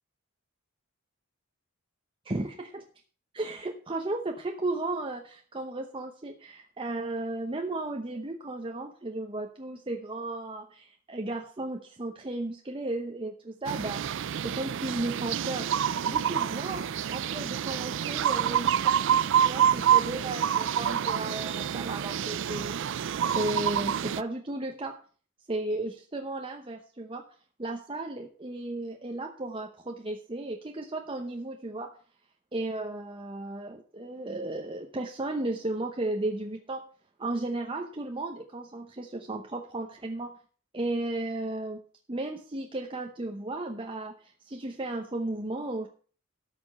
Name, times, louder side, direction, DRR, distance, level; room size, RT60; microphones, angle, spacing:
voice 1, 2.2-2.8 3.3-15.7 16.0-24.9 25.5-27.2 27.6-31.9 32.5-36.8 37.2-40.4 40.7-45.9, right 2 dB, 25° right, 2 dB, 0.9 m, -35 dB
sound 1, 13.7-24.2, right 9 dB, 60° right, 0.4 m, -27 dB
13.0 x 5.2 x 6.6 m, 0.42 s
head